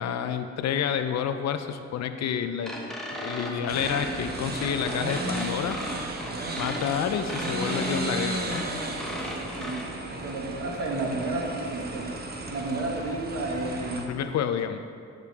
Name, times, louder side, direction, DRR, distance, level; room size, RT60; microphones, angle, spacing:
voice 1, 0.0-5.8 6.6-8.7 14.0-14.8, left 8 dB, 65° left, 9 dB, 0.5 m, -29 dB
sound 1, 2.6-9.8, equal, ahead, 1.2 m, -36 dB
sound 2, 3.7-14.0, right 2 dB, 30° right, 1.0 m, -34 dB
voice 2, 10.1-12.1 12.5-14.0, right 2 dB, 50° right, -2 dB, 1.7 m, -31 dB
10.0 x 6.5 x 3.6 m, 2.3 s
cardioid pair, 90°, 30 cm